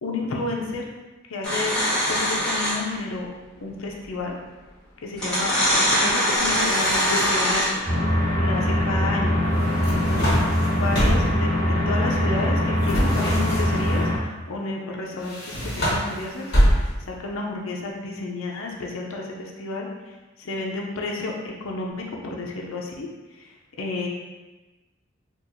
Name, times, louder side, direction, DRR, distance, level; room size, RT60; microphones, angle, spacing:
voice 1, 0.0-0.9 1.3-1.8 2.1-3.3 3.6-4.3 5.0-7.9 8.4-9.4 9.8-10.4 10.7-19.9 20.4-21.3 21.6-23.1 23.4-23.5 23.8-24.1, left 2 dB, 85° left, -1 dB, 0.6 m, -31 dB
sound 1, 1.4-3.0 4.3-4.4 5.1-7.9, equal, 5° left, 1.4 m, -22 dB
sound 2, 6.3-7.6 9.6-11.4 12.8-14.0 15.2-17.2, equal, 55° left, 1.3 m, -25 dB
sound 3, 7.9-14.2, left 1 dB, 85° right, 1.2 m, -22 dB
4.4 x 2.4 x 2.6 m, 1.2 s
head